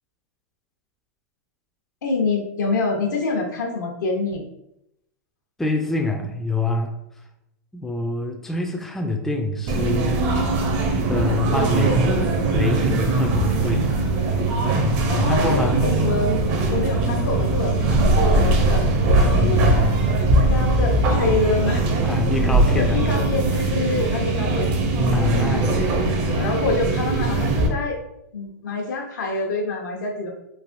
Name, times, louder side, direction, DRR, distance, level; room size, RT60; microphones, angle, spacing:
voice 1, 2.0-4.5 15.1-16.4 16.7-18.9 19.5-19.9 20.5-21.9 22.6-24.7 25.8-28.0 28.3-30.3, left 3 dB, 90° left, 1 dB, 0.8 m, -26 dB
voice 2, 5.6-6.9 7.7-10.3 10.9-13.9 14.7-15.8 19.3-20.1 22.0-23.0 24.3-24.7 25.1-25.9, left 2 dB, 5° left, 2 dB, 0.3 m, -26 dB
sound 1, 9.7-27.7, right 2 dB, 45° right, 0.6 m, -20 dB
3.3 x 2.5 x 2.5 m, 0.83 s
hypercardioid pair, 130°, 9 cm